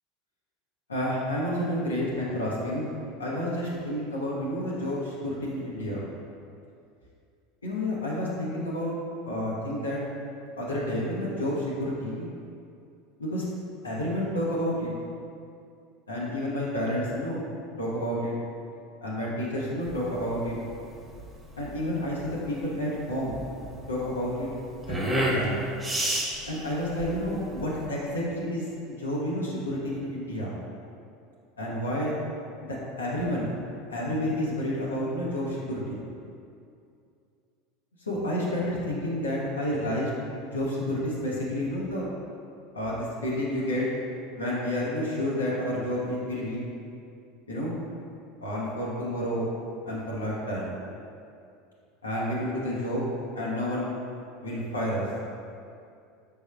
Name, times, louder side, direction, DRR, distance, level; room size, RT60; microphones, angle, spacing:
voice 1, 0.9-2.9 3.2-6.0 7.6-8.9 9.2-10.0 10.6-12.3 13.2-13.5 13.8-14.9 16.1-18.3 19.0-20.5 21.6-23.3 23.9-24.5 24.9-25.6 26.5-30.5 31.6-32.2 32.6-33.5 33.9-36.0 38.1-40.1 40.4-42.1 42.7-43.9 44.3-46.7 47.5-47.8 48.4-49.5 49.9-50.7 52.0-53.9 54.4-55.1, equal, 85° left, -5 dB, 0.7 m, -30 dB
sound 1, 19.8-27.9, right 1 dB, 15° right, 0.8 m, -32 dB
5.3 x 3.4 x 2.3 m, 2.5 s
figure-of-eight pair, 75°, 0 cm